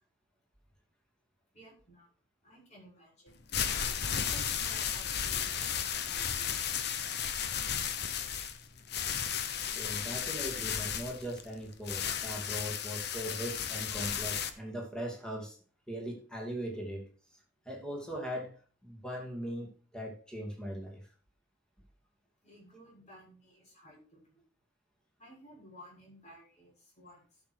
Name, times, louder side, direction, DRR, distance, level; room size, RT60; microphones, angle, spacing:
voice 1, 1.5-2.1 2.4-3.4 4.1-6.9 22.4-24.4 25.2-27.4, equal, 35° left, -4 dB, 6.4 m, -55 dB
sound 1, 3.3-14.5, left 8 dB, 60° left, 1.0 m, -34 dB
voice 2, 9.7-15.6 15.9-17.1 17.6-18.6 18.8-21.0, equal, 5° left, -1 dB, 2.7 m, -39 dB
11.5 x 6.6 x 4.5 m, 0.40 s
head